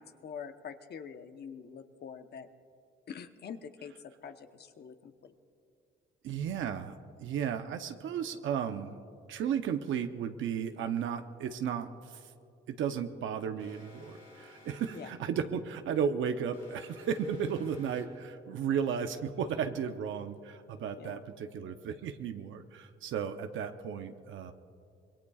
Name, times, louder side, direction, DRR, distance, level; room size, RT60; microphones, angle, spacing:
voice 1, 0.0-2.5 3.1-5.3 14.9-15.1 21.0-21.2, left 7 dB, 55° left, 7 dB, 1.0 m, -45 dB
voice 2, 6.2-9.0 9.3-12.2 12.7-24.5, right 7 dB, 75° right, 7 dB, 0.8 m, -34 dB
Alarm, 13.6-15.3 16.5-18.3, left 3 dB, 85° left, 3.1 m, -56 dB
25.5 x 21.0 x 2.4 m, 2.5 s
cardioid pair, 90°, 20 cm